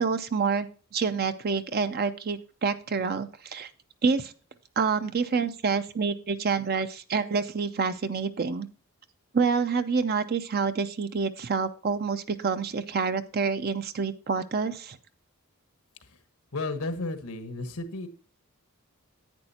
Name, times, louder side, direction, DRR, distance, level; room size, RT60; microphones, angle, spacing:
voice 1, 0.0-3.7 4.0-4.3 4.8-8.7 9.3-15.0, right 5 dB, 45° right, 10 dB, 0.5 m, -27 dB
voice 2, 16.5-18.1, left 2 dB, 85° left, 8 dB, 1.3 m, -33 dB
10.5 x 8.8 x 2.8 m, 0.38 s
head